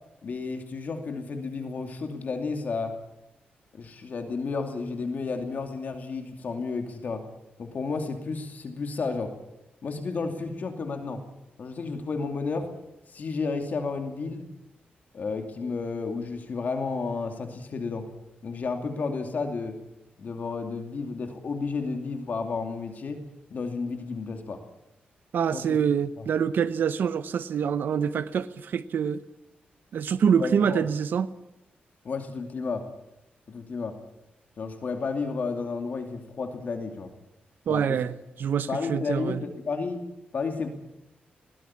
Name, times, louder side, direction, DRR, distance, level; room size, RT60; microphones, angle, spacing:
voice 1, 0.2-3.0 3.7-7.2 7.6-9.3 9.8-11.2 11.6-12.7 13.1-14.5 15.1-18.1 18.4-19.8 20.2-23.2 23.5-24.6 25.5-25.8 26.2-26.3 30.4-30.9 32.0-32.9 33.5-34.0 34.6-37.1 37.7-38.0 38.7-40.0 40.3-40.7, left 4 dB, 50° left, 2.6 m, -32 dB
voice 2, 25.3-29.2 29.9-31.3 37.7-39.4, right 7 dB, 70° right, 0.8 m, -26 dB
20.5 x 18.0 x 9.7 m
wide cardioid pair, 145°, 4 cm